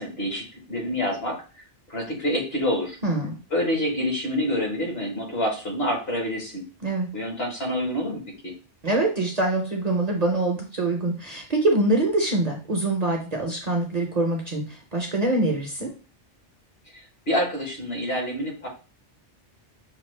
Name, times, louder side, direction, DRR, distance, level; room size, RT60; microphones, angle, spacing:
voice 1, 0.0-1.4 1.9-3.0 3.5-6.6 7.1-8.5 16.9-18.7, equal, 60° left, 0 dB, 1.6 m, -27 dB
voice 2, 3.0-3.3 6.8-7.1 8.8-15.9, right 2 dB, 40° right, 1 dB, 0.7 m, -24 dB
5.8 x 2.3 x 3.2 m, 0.35 s
omnidirectional pair, 1.2 m